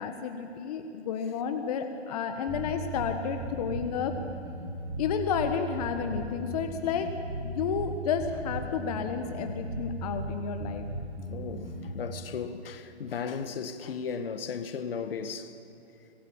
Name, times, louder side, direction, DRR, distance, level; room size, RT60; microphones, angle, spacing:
voice 1, 0.0-4.1 5.0-10.8, left 7 dB, 35° left, 1.5 m, -31 dB
sound 1, 2.5-12.1, right 1 dB, 10° right, 3.6 m, -37 dB
voice 2, 11.3-15.5, left 6 dB, 55° left, 1.9 m, -36 dB
25.0 x 21.0 x 8.9 m
hypercardioid pair, 155°, 34 cm